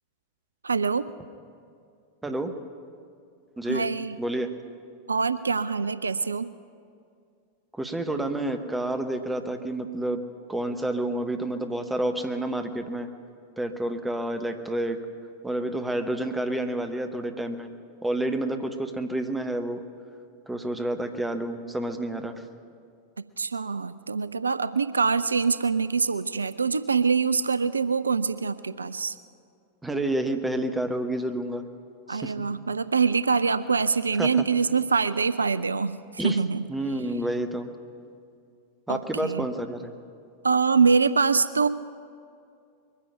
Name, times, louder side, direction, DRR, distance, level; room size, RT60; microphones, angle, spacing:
voice 1, 0.6-1.1 3.7-4.2 5.1-6.5 23.4-29.2 32.1-36.6 38.9-39.5 40.4-41.7, right 5 dB, 75° right, 15 dB, 0.3 m, -24 dB
voice 2, 4.2-4.5 7.7-10.2 10.5-13.1 13.6-15.0 15.4-17.7 18.0-19.8 20.5-22.4 29.8-31.6 32.1-32.3 34.2-34.3 36.2-36.4 36.7-37.7 38.9-39.9, right 1 dB, 5° right, 7 dB, 1.0 m, -29 dB
22.0 x 9.9 x 6.1 m, 2.4 s
figure-of-eight pair, 90°, 0 cm